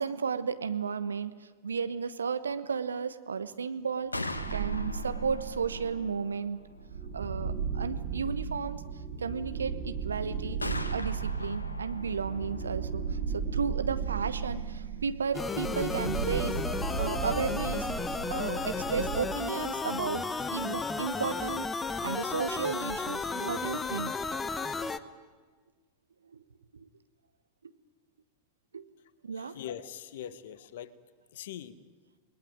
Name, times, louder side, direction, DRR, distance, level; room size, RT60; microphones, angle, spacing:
voice 1, 0.0-6.6 7.1-8.9 9.2-10.6 10.9-17.9 18.3-21.7 22.0-24.2 26.3-26.4 26.7-26.9 28.7-28.9 29.2-29.6, right 6 dB, 70° right, 12 dB, 1.1 m, -34 dB
Gunshot gunfire, 3.9-17.7, left 2 dB, 80° left, 1.4 m, -44 dB
sound 1, 4.3-6.0 6.6-19.2, right 6 dB, 55° right, 5.4 m, -35 dB
sound 2, 15.3-25.0, left 4 dB, 15° left, 1.0 m, -33 dB
voice 2, 29.3-30.9 31.3-31.8, left 10 dB, 55° left, 15 dB, 1.3 m, -42 dB
28.5 x 20.5 x 9.4 m, 1.4 s
figure-of-eight pair, 90°, 0 cm